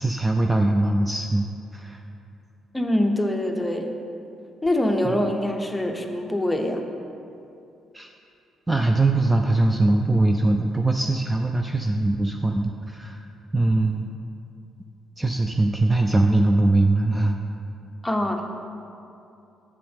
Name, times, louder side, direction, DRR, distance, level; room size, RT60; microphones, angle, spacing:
voice 1, 0.0-1.5 1.7-2.0 5.1-5.2 7.9-8.1 8.7-13.2 13.5-14.1 15.2-17.4, right 2 dB, 15° right, 4 dB, 0.4 m, -21 dB
voice 2, 2.7-3.9 4.6-6.9 18.0-18.4, left 1 dB, 10° left, 4 dB, 0.8 m, -24 dB
7.5 x 7.2 x 3.5 m, 2.6 s
cardioid pair, 75°, 0 cm